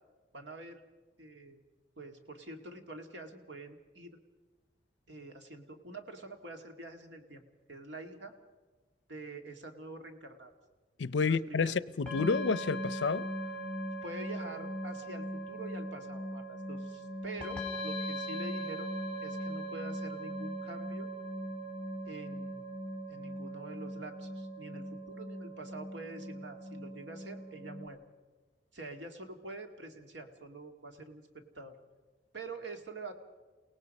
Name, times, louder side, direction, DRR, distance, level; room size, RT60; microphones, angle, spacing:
voice 1, 0.3-0.8 1.2-1.6 2.0-4.2 5.1-7.4 7.7-8.3 9.1-10.5 11.2-11.8 14.0-18.9 19.2-21.1 22.0-22.7 23.1-28.0 28.7-31.8 32.3-33.1, right 2 dB, 75° right, 2.1 m, -46 dB
voice 2, 11.0-13.3, left 4 dB, 80° left, 0.6 m, -30 dB
sound 1, 12.1-27.9, equal, 5° left, 3.6 m, -39 dB
29.0 x 18.0 x 5.4 m
head